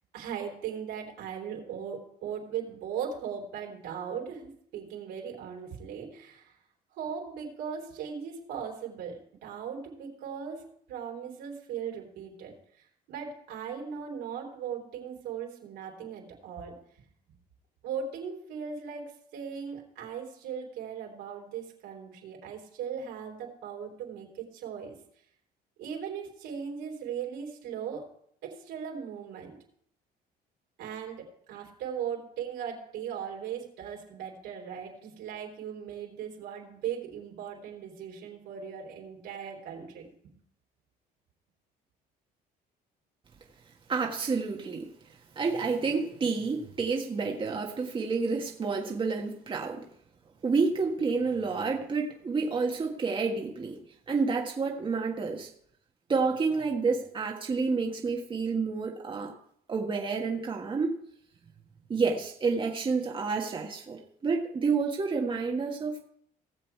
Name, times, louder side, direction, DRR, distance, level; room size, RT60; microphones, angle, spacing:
voice 1, 0.1-6.6 6.9-16.8 17.8-25.0 25.8-28.1 28.4-29.6 30.8-40.1, right 7 dB, 85° right, 0 dB, 3.6 m, -38 dB
voice 2, 43.9-44.9 45.3-49.8 50.4-53.8 54.1-55.5 56.1-59.3 59.7-61.0 61.9-66.1, right 4 dB, 30° right, 0 dB, 1.6 m, -29 dB
17.5 x 7.5 x 4.7 m, 0.67 s
cardioid pair, 110°, 17 cm